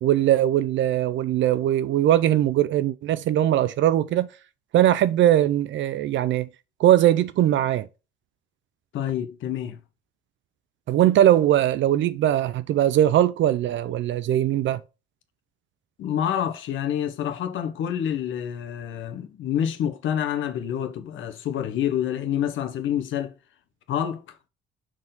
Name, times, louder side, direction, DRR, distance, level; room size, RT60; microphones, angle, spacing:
voice 1, 0.0-4.3 4.7-6.5 6.8-7.9 10.9-14.8, right 12 dB, 70° right, 0.5 m, -20 dB
voice 2, 8.9-9.8 16.0-23.3 23.9-24.2, left 9 dB, 75° left, 1.1 m, -27 dB
6.0 x 4.5 x 3.8 m
cardioid pair, 90°, 20 cm